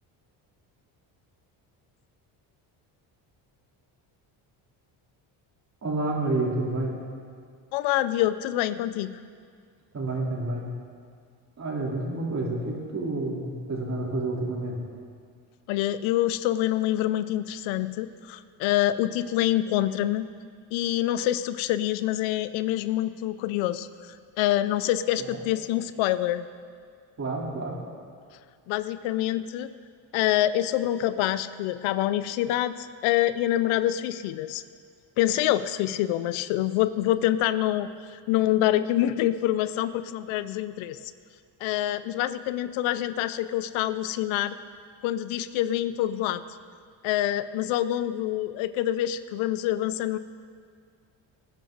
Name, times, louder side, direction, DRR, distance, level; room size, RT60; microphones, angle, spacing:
voice 1, 5.8-6.9 9.9-10.7 11.6-14.8 25.2-25.4 27.2-27.8, right 2 dB, 35° right, -3 dB, 3.7 m, -29 dB
voice 2, 7.7-9.2 15.7-20.3 20.7-26.5 28.7-29.7 30.1-34.6 35.2-41.1 41.6-44.6 45.0-46.4 47.0-50.2, left 13 dB, 85° left, 14 dB, 0.6 m, -26 dB
19.5 x 10.0 x 4.0 m, 2.1 s
supercardioid pair, 85°, 47 cm